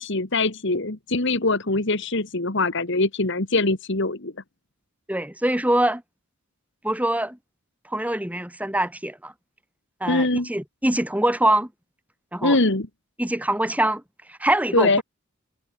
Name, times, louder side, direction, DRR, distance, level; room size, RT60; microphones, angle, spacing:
voice 1, 0.0-4.3 10.1-10.5 12.4-12.9 14.7-15.0, left 2 dB, 60° left, 2.1 m, -22 dB
voice 2, 5.1-6.0 6.8-7.4 7.9-9.3 10.0-11.7 12.3-12.6 13.2-14.0 14.4-15.0, right 1 dB, 5° right, 3.3 m, -23 dB
head